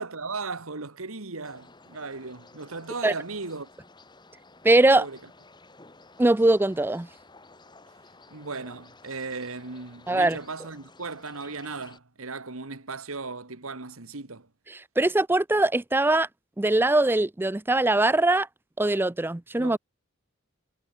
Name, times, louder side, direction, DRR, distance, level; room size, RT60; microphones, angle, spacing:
voice 1, 0.0-3.7 5.0-5.2 8.3-14.5 19.6-19.8, right 4 dB, 85° right, 1.9 m, -36 dB
sound 1, 1.4-12.0, left 3 dB, 20° left, 3.1 m, -53 dB
voice 2, 4.6-5.1 6.2-7.1 10.1-10.4 14.7-16.3 16.6-18.5 18.8-19.8, right 2 dB, 10° right, 0.4 m, -21 dB
head